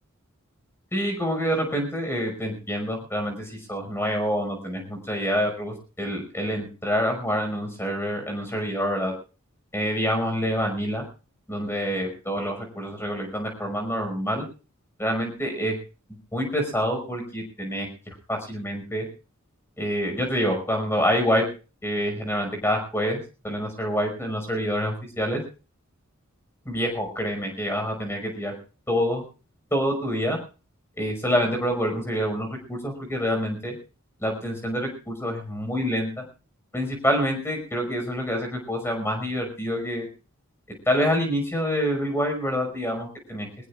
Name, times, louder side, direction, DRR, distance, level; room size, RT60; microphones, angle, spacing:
voice 1, 0.9-9.1 9.7-11.0 11.5-14.4 15.0-15.8 16.3-17.9 18.3-19.1 19.8-21.5 21.8-23.2 23.4-25.4 26.7-28.5 28.9-29.2 29.7-30.4 31.0-33.7 34.2-36.2 36.7-40.1 40.9-43.5, equal, 10° left, 3 dB, 5.7 m, -27 dB
23.0 x 20.0 x 2.5 m, 0.35 s
head